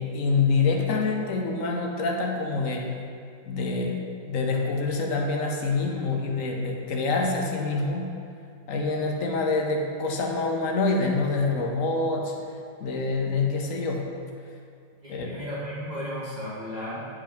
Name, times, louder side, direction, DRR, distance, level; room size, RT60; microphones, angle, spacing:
voice 1, 0.0-3.0 3.5-8.1 8.7-12.3 12.8-14.1 15.1-15.4, left 3 dB, 55° left, 1 dB, 1.2 m, -26 dB
voice 2, 15.0-17.0, equal, 25° right, -9 dB, 2.4 m, -34 dB
9.7 x 5.5 x 5.1 m, 2.3 s
omnidirectional pair, 1.9 m